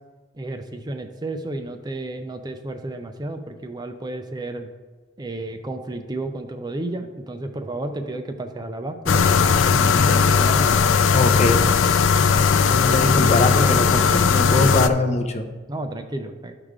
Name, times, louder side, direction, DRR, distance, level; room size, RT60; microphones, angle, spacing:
voice 1, 0.4-4.7 5.2-10.7 15.7-16.5, right 2 dB, 20° right, 6 dB, 0.5 m, -32 dB
sound 1, 9.1-14.9, left 5 dB, 80° left, 0.4 m, -18 dB
voice 2, 11.1-11.6 12.5-15.5, left 2 dB, 35° left, 5 dB, 0.7 m, -22 dB
12.0 x 4.9 x 3.7 m, 1.3 s
head